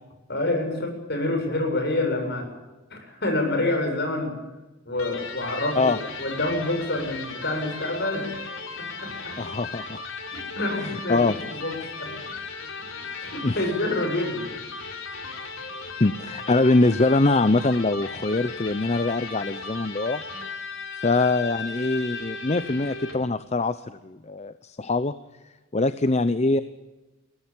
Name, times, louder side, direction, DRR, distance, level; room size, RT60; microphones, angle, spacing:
voice 1, 0.3-2.5 2.9-4.3 4.9-8.3 8.8-9.3 10.3-12.1 13.2-14.6, left 2 dB, 55° left, 4 dB, 7.8 m, -27 dB
Electric guitar, 4.9-23.3, left 4 dB, 75° left, 4.0 m, -36 dB
voice 2, 9.4-10.0 10.8-11.4 13.4-13.6 16.0-20.2 21.0-25.1 25.7-26.6, left 2 dB, 30° left, 13 dB, 0.7 m, -23 dB
22.5 x 18.0 x 9.0 m, 1.1 s
head